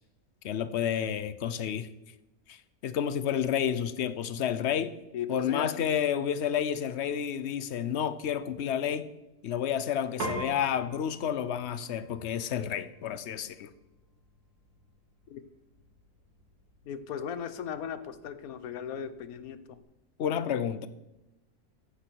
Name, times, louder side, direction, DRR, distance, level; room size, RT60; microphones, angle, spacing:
voice 1, 0.4-1.9 2.5-4.9 5.3-9.1 9.4-13.7 20.2-20.9, left 9 dB, 55° left, 14 dB, 0.9 m, -30 dB
voice 2, 5.1-5.8 15.3-15.4 16.8-19.8, left 8 dB, 75° left, 13 dB, 1.3 m, -37 dB
Piano, 10.2-19.8, right 2 dB, 85° right, 3.0 m, -45 dB
14.5 x 11.5 x 4.6 m, 0.97 s
omnidirectional pair, 1.6 m